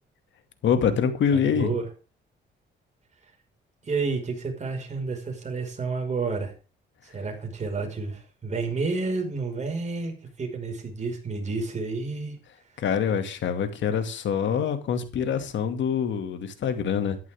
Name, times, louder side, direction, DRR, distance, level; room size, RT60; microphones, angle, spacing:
voice 1, 0.6-1.7 12.8-17.2, left 7 dB, 70° left, 8 dB, 2.5 m, -25 dB
voice 2, 1.3-1.9 3.8-6.5 7.0-12.4, right 4 dB, 35° right, 3 dB, 5.5 m, -30 dB
13.5 x 11.0 x 3.7 m, 0.33 s
cardioid pair, 90°, 20 cm